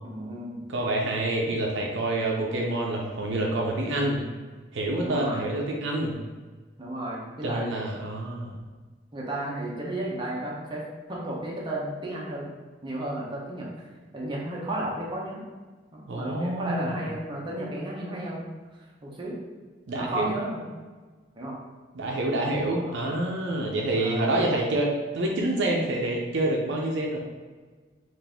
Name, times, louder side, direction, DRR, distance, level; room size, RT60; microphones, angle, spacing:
voice 1, 0.0-0.7 5.0-5.4 6.8-7.7 9.1-10.8 11.1-12.5 12.8-13.9 14.1-15.4 15.9-18.4 18.8-19.4 19.9-20.7 21.4-21.6 22.8-23.0 24.0-24.4, right 1 dB, 25° right, -4 dB, 0.8 m, -33 dB
voice 2, 0.7-4.2 4.7-6.2 7.4-8.6 16.1-17.0 19.9-20.3 21.9-27.2, right 1 dB, 70° right, -1 dB, 0.6 m, -27 dB
4.0 x 2.5 x 3.5 m, 1.4 s
head